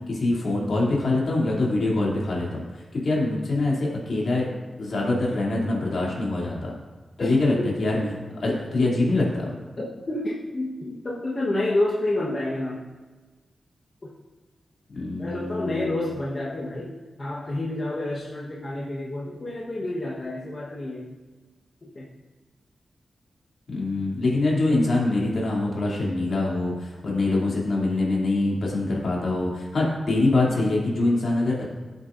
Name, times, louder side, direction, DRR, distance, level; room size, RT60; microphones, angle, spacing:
voice 1, 0.1-4.5 4.8-6.7 7.2-8.0 8.4-9.5 14.9-15.9 23.7-31.6, left 2 dB, 65° left, -4 dB, 2.7 m, -24 dB
voice 2, 7.2-7.7 8.0-8.1 9.8-12.9 14.0-14.1 15.2-21.1 21.8-22.1, left 1 dB, 35° left, -5 dB, 1.2 m, -29 dB
15.5 x 8.2 x 2.6 m, 1.3 s
wide cardioid pair, 155°, 0 cm